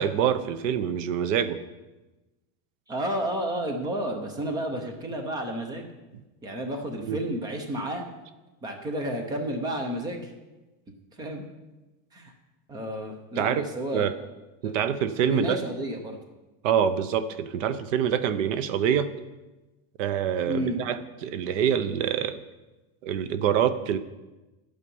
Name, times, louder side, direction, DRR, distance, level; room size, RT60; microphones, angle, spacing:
voice 1, 0.0-1.6 7.0-7.2 13.4-13.7 13.9-14.1 14.6-15.6 16.6-19.1 20.0-22.4 23.0-24.0, right 8 dB, 55° right, 13 dB, 0.8 m, -25 dB
voice 2, 2.9-5.9 6.4-8.0 8.6-10.3 11.2-11.4 12.1-12.3 12.7-14.1 14.6-14.7 15.3-16.2 20.5-20.8, right 1 dB, 10° right, 5 dB, 0.6 m, -31 dB
11.5 x 8.6 x 5.4 m, 1.1 s
supercardioid pair, 175°, 46 cm